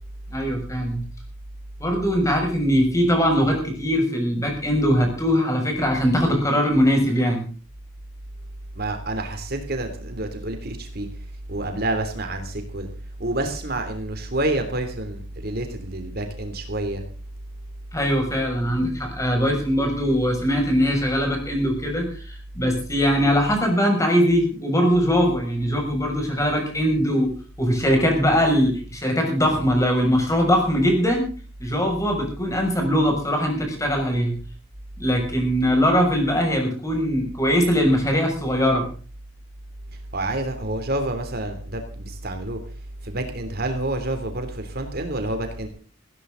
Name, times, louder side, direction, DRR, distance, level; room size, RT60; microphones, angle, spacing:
voice 1, 0.3-1.0 1.8-7.4 17.9-27.3 27.6-31.3 31.6-34.3 35.0-38.9, equal, 15° left, 2 dB, 6.6 m, -21 dB
voice 2, 8.8-11.1 11.5-12.9 13.2-17.0 40.1-42.6 43.0-45.7, right 1 dB, 50° right, 6 dB, 3.2 m, -28 dB
18.5 x 17.0 x 4.0 m, 0.38 s
head